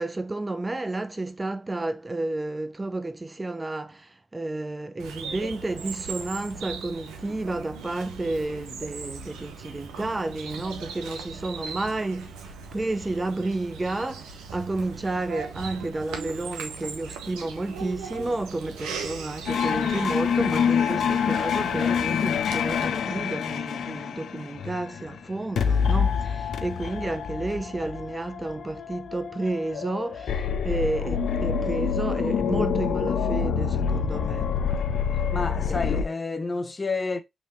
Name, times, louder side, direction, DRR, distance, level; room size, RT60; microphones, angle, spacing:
voice 1, 0.0-12.4 12.7-34.5 35.7-36.0, right 2 dB, 25° right, 0.6 m, -31 dB
Bird vocalization bird call bird song, 5.0-22.8, right 5 dB, 85° right, 0.8 m, -39 dB
sound 1, 19.5-25.2 25.6-36.0, left 7 dB, 70° left, 0.4 m, -26 dB
voice 2, 35.1-37.2, left 3 dB, 35° left, 0.9 m, -30 dB
5.2 x 3.2 x 3.0 m
hypercardioid pair, 40°, 0 cm